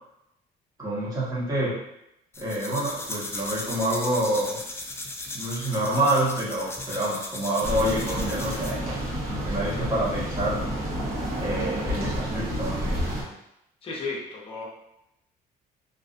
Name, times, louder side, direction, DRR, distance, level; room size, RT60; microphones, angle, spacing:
voice 1, 0.8-1.7 2.4-4.6 5.3-9.0 9.3-10.6 11.4-13.1, right 1 dB, 20° right, -7 dB, 1.0 m, -27 dB
sound 1, 2.3-8.8, left 2 dB, 15° left, 0.3 m, -37 dB
sound 2, 7.6-13.2, equal, 55° right, 0.9 m, -29 dB
voice 2, 13.8-14.7, left 3 dB, 35° left, -3 dB, 0.7 m, -34 dB
2.5 x 2.3 x 2.4 m, 0.82 s
cardioid pair, 110°, 17 cm